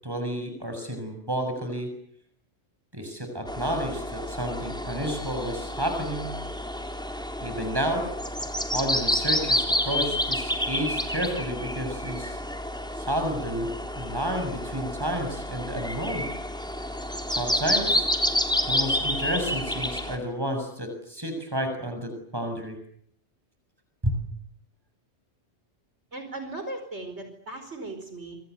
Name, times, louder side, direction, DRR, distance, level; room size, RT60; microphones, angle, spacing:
voice 1, 0.0-1.9 2.9-6.3 7.4-8.1 8.7-12.4 13.0-16.3 17.3-18.1 18.6-22.8 24.0-24.2, equal, 20° right, 6 dB, 6.6 m, -31 dB
sound 1, 3.5-20.2, left 1 dB, 5° left, 3.5 m, -29 dB
voice 2, 26.1-28.4, right 2 dB, 80° right, 7 dB, 4.9 m, -37 dB
28.0 x 24.5 x 8.2 m, 0.66 s
omnidirectional pair, 1.1 m